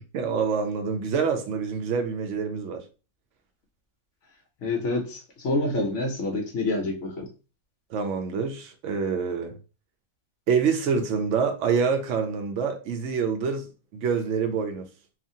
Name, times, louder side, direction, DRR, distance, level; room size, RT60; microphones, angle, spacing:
voice 1, 0.1-2.8 7.9-9.6 10.5-14.9, right 6 dB, 65° right, 0.8 m, -26 dB
voice 2, 4.6-7.3, left 2 dB, 65° left, 0.8 m, -27 dB
2.8 x 2.4 x 2.6 m
omnidirectional pair, 1.7 m